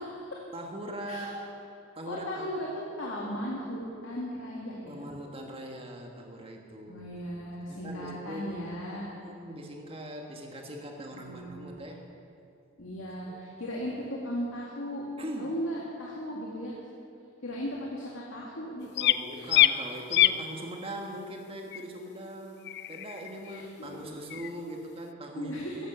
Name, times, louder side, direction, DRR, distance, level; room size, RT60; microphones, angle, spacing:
voice 1, 0.0-0.4 1.1-1.3 2.0-5.0 6.9-9.1 11.1-11.7 12.8-15.0 15.4-16.8 17.4-19.5 23.4-24.0 25.3-25.8, equal, 75° left, -4 dB, 2.1 m, -37 dB
voice 2, 0.5-1.6 2.0-2.5 4.9-7.2 7.6-8.4 8.9-12.0 13.3-13.4 15.2-15.7 19.0-25.8, right 1 dB, 30° right, 2 dB, 1.7 m, -41 dB
sound 1, 19.0-19.2 19.5-19.7 20.1-20.4 21.7-21.8 22.7-23.7 24.3-24.5, left 13 dB, 55° left, 0.4 m, -24 dB
15.0 x 11.0 x 6.9 m, 2.5 s
head